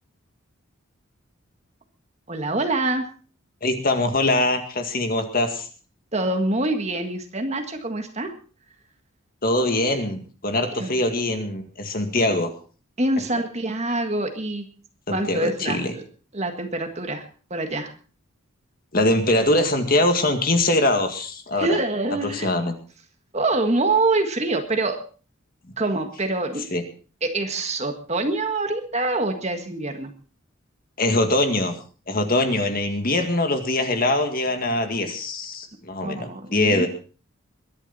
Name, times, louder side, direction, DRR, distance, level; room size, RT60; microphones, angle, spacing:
voice 1, 2.3-3.1 6.1-8.3 10.7-10.9 13.0-14.7 15.1-16.0 16.3-17.2 17.5-17.9 21.5-22.5 23.3-25.0 25.8-26.8 27.2-30.1 36.0-36.9, right 2 dB, 30° right, 6 dB, 1.7 m, -25 dB
voice 2, 3.6-5.7 9.4-12.5 15.1-15.9 18.9-21.8 22.3-22.7 26.7-26.8 31.0-31.7 32.1-36.9, left 1 dB, 40° left, 6 dB, 2.0 m, -22 dB
22.0 x 11.0 x 4.2 m, 0.39 s
head